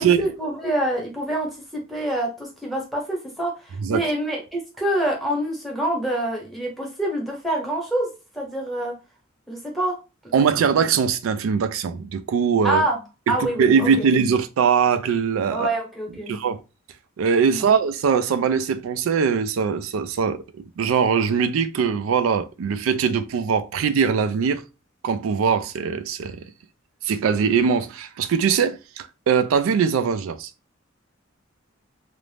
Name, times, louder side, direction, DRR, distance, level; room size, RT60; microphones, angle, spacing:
voice 1, 0.0-8.1 8.3-8.9 9.5-10.0 12.6-13.0 13.3-14.1 15.5-16.3 17.5-17.7, right 1 dB, ahead, 0.8 m, -26 dB
voice 2, 10.3-12.8 13.3-15.7 16.3-16.6 17.2-24.6 25.0-26.4 27.0-30.5, right 6 dB, 85° right, 0.3 m, -21 dB
2.5 x 2.0 x 3.2 m
head